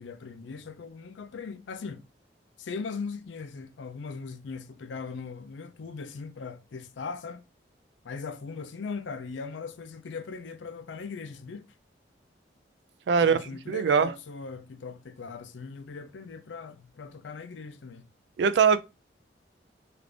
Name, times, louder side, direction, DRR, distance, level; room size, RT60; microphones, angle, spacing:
voice 1, 0.0-2.1 2.6-7.4 8.0-11.7 13.2-18.1, left 5 dB, 80° left, 0.5 m, -39 dB
voice 2, 13.1-13.4 13.7-14.1 18.4-18.8, right 6 dB, 65° right, 0.3 m, -21 dB
3.3 x 2.5 x 3.1 m
head